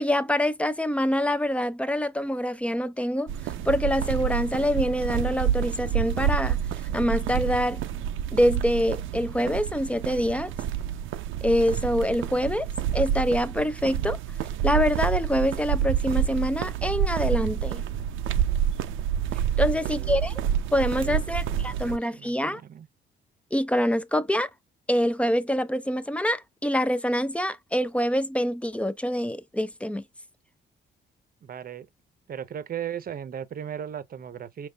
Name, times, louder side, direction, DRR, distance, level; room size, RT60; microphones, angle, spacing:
voice 1, 0.0-3.3 3.6-6.6 6.9-7.8 8.3-10.5 11.4-12.7 12.9-14.2 14.6-17.8 19.6-20.4 20.7-22.6 23.5-24.5 24.9-30.0, equal, 5° left, 0.5 m, -25 dB
sound 1, 3.3-22.0, right 9 dB, 85° right, 0.6 m, -28 dB
voice 2, 19.7-20.2 20.9-22.9 31.4-31.9 32.3-34.7, right 9 dB, 45° right, 0.7 m, -37 dB
5.2 x 3.1 x 2.3 m
cardioid pair, 90°, 20 cm